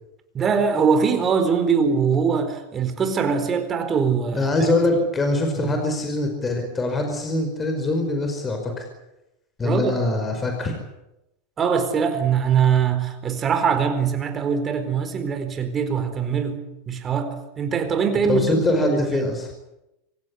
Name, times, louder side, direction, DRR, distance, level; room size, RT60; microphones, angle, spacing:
voice 1, 0.3-4.5 5.6-5.8 9.6-10.0 11.6-16.6 16.9-19.0, right 6 dB, 25° right, 8 dB, 4.4 m, -22 dB
voice 2, 4.3-8.8 9.6-10.8 18.2-19.5, left 2 dB, 20° left, 4 dB, 5.0 m, -23 dB
25.0 x 17.0 x 10.0 m, 0.91 s
supercardioid pair, 130°, 0 cm